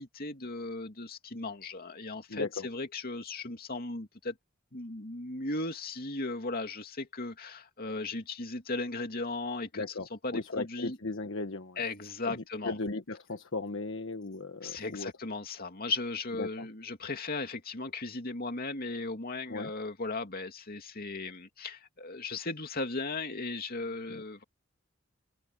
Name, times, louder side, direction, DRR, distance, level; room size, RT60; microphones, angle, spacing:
voice 1, 0.0-4.4 4.7-9.8 10.1-11.0 11.8-12.7 14.6-24.4, left 3 dB, 45° left, 2.6 m, -37 dB
voice 2, 2.3-2.7 9.7-11.8 12.2-15.1 16.4-16.7 19.5-19.7 24.1-24.2, left 3 dB, 65° left, 1.3 m, -37 dB
head